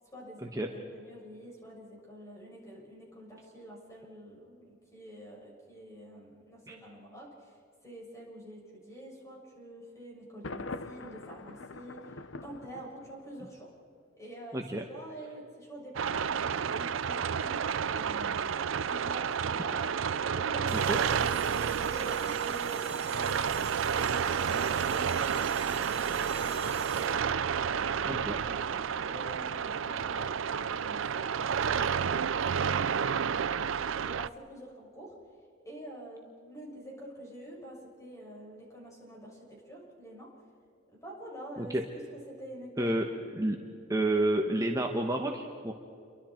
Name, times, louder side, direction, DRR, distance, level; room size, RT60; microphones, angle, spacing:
voice 1, 0.1-13.7 14.2-19.8 20.3-31.3 33.9-35.1 35.6-40.3 40.9-41.8 42.4-43.0 43.4-43.5, right 1 dB, 15° left, -3 dB, 6.9 m, -47 dB
Thunder, 10.4-13.4, left 3 dB, 75° left, 0.9 m, -43 dB
voice 2, 14.5-14.8 20.7-21.0 28.0-28.3 41.6-41.8 42.8-43.1 43.3-43.6 43.9-45.7, right 1 dB, 20° right, 2 dB, 1.2 m, -30 dB
Old Car, 16.0-34.3, right 7 dB, 75° right, 0.5 m, -30 dB
sound 1, 20.7-27.4, right 8 dB, 35° right, 2.2 m, -42 dB
29.0 x 24.0 x 4.5 m, 2.5 s
head